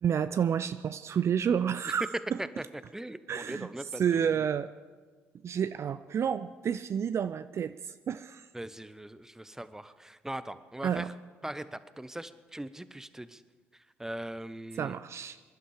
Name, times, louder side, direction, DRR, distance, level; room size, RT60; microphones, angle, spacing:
voice 1, 0.0-2.1 3.3-3.7 4.0-4.7 5.4-8.5 10.8-11.1 14.8-15.4, right 8 dB, 45° right, 13 dB, 0.4 m, -30 dB
voice 2, 2.9-4.4 8.5-11.1 11.4-13.4 13.7-15.0, right 1 dB, 5° right, 14 dB, 0.8 m, -41 dB
23.0 x 11.5 x 4.9 m, 1.4 s
hypercardioid pair, 50°, 6 cm